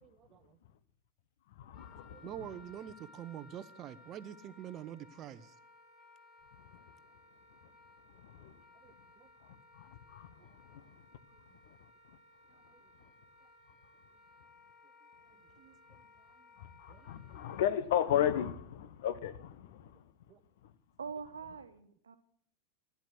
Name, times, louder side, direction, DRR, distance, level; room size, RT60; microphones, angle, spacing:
voice 1, 0.0-0.6 2.1-5.5 8.8-9.3 10.4-10.6 12.5-12.8 15.6-15.8 16.2-16.5 16.9-17.1 20.3-20.4, right 10 dB, 30° right, 0.9 m, -47 dB
voice 2, 1.6-2.3 8.4-8.5 9.7-10.3 10.7-10.8 16.6-20.0, left 10 dB, 55° left, 1.1 m, -34 dB
Wind instrument woodwind instrument, 1.7-17.8, left 2 dB, 35° left, 6.6 m, -60 dB
voice 3, 21.0-22.2, right 6 dB, 70° right, 1.3 m, -44 dB
14.5 x 11.0 x 6.3 m
figure-of-eight pair, 90°, 0 cm